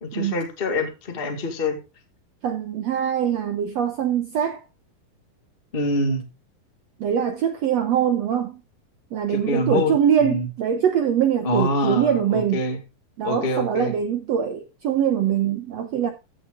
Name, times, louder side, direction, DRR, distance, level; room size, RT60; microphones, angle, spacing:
voice 1, 0.0-1.8 5.7-6.2 9.3-9.9 10.2-10.5 11.4-12.8 13.2-13.9, left 1 dB, 30° left, 1.1 m, -25 dB
voice 2, 2.4-4.6 7.0-8.6 9.1-12.6 13.2-16.1, right 8 dB, 75° right, 1.5 m, -23 dB
14.5 x 6.7 x 3.7 m
omnidirectional pair, 4.3 m